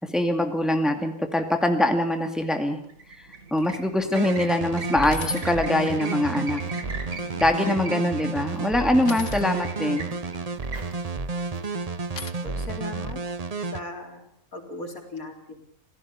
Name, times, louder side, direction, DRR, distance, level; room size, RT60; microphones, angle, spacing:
voice 1, 0.0-2.8 3.5-6.6 7.4-10.1, left 1 dB, ahead, 5 dB, 2.3 m, -23 dB
sound 1, 2.8-12.2, right 4 dB, 75° right, 2.8 m, -40 dB
sound 2, 3.6-3.9 4.4-4.5 5.0-5.5 6.7-7.3 9.0-9.5 10.9-11.4 12.2-12.3, left 5 dB, 60° left, 1.9 m, -37 dB
sound 3, 4.1-13.8, right 4 dB, 30° right, 0.9 m, -31 dB
voice 2, 12.4-13.2 13.7-14.2 14.5-15.6, left 2 dB, 75° left, 3 dB, 4.4 m, -38 dB
27.0 x 17.5 x 6.9 m, 0.66 s
omnidirectional pair, 1.5 m